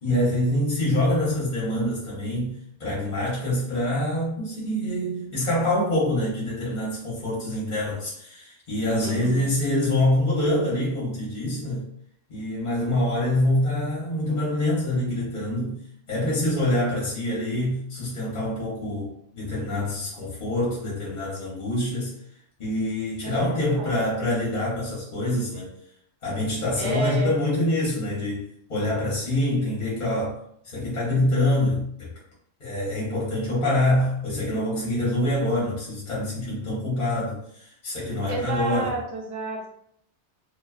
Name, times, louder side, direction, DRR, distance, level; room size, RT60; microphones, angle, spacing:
voice 1, 0.0-2.5 2.8-11.8 12.3-15.8 16.1-22.1 22.6-25.7 26.2-28.4 28.7-30.4 30.6-32.1 32.6-38.9, left 1 dB, 45° left, -7 dB, 0.8 m, -25 dB
voice 2, 9.0-9.5 16.7-16.9 23.2-24.2 26.7-27.4 38.3-39.7, right 1 dB, 80° right, -1 dB, 1.0 m, -31 dB
2.5 x 2.2 x 2.2 m, 0.72 s
omnidirectional pair, 1.2 m